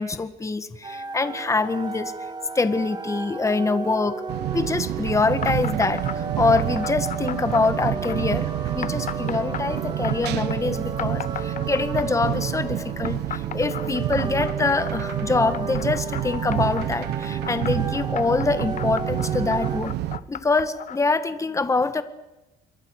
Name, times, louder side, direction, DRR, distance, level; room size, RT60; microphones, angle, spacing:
voice 1, 0.0-2.1 2.5-4.2 4.5-8.5 8.7-19.9 20.3-22.0, left 3 dB, 20° left, 11 dB, 1.7 m, -24 dB
sound 1, 0.8-19.8, right 3 dB, 25° right, 2.6 m, -35 dB
sound 2, 4.3-20.2, right 13 dB, 80° right, 1.3 m, -28 dB
sound 3, 5.4-6.2 6.5-8.2 8.8-10.6 11.0-12.3 13.0-16.9 17.4-21.0, left 10 dB, 50° left, 0.9 m, -35 dB
27.5 x 23.0 x 6.5 m, 1.0 s
cardioid pair, 110°, 17 cm